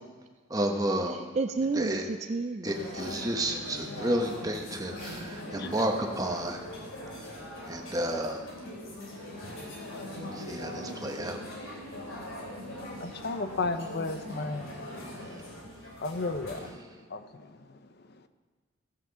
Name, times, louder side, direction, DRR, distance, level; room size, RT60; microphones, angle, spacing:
voice 1, 0.5-1.2 1.8-2.0 2.6-6.6 7.7-8.4 10.5-11.4, right 1 dB, 20° right, 3 dB, 1.0 m, -31 dB
voice 2, 1.1-3.1, right 3 dB, 35° right, 8 dB, 0.4 m, -31 dB
sound 1, 2.7-16.7, left 1 dB, 80° left, 3.2 m, -41 dB
voice 3, 13.0-14.8 16.0-16.8 17.1-17.7, left 3 dB, 50° left, 10 dB, 0.6 m, -34 dB
16.0 x 5.9 x 6.8 m, 1.4 s
head